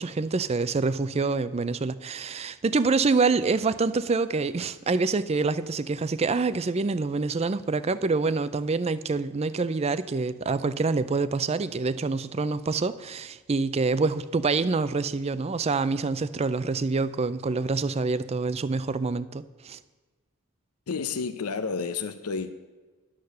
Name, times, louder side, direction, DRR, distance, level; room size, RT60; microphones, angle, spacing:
voice 1, 0.0-19.8, right 4 dB, 30° right, 0.4 m, -26 dB
voice 2, 20.9-22.5, left 5 dB, 85° left, 0.6 m, -30 dB
11.0 x 6.6 x 6.7 m
head